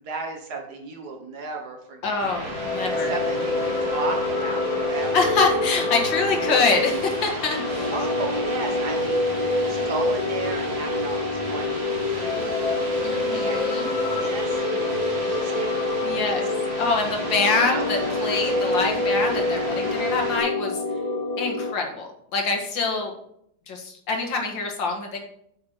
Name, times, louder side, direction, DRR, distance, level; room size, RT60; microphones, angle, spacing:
voice 1, 0.0-2.3 2.9-5.3 6.3-6.6 7.9-9.2 9.6-15.7 16.1-16.4 17.1-17.8, right 4 dB, 60° right, 2 dB, 2.0 m, -35 dB
voice 2, 2.0-3.1 5.1-7.9 13.0-13.9 16.0-20.8 21.4-23.1 23.7-25.2, left 4 dB, 90° left, 2 dB, 2.4 m, -25 dB
sound 1, 2.2-20.4, right 1 dB, 40° right, 1.4 m, -35 dB
sound 2, 2.4-21.7, left 2 dB, 30° left, 0.7 m, -26 dB
8.3 x 6.5 x 4.5 m, 0.69 s
omnidirectional pair, 2.0 m